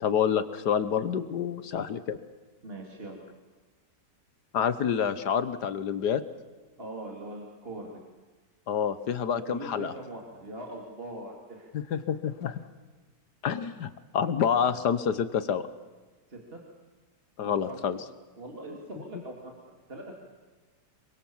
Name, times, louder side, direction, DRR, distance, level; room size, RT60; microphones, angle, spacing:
voice 1, 0.0-2.2 4.5-6.2 8.7-9.9 11.9-12.6 13.4-15.6 17.4-18.0, left 8 dB, 75° left, 13 dB, 1.6 m, -28 dB
voice 2, 2.6-3.2 6.8-7.9 9.3-11.7 16.3-16.6 17.4-17.8 18.4-20.1, right 1 dB, 35° right, 0 dB, 3.3 m, -41 dB
26.0 x 24.0 x 7.3 m, 1.3 s
omnidirectional pair, 1.8 m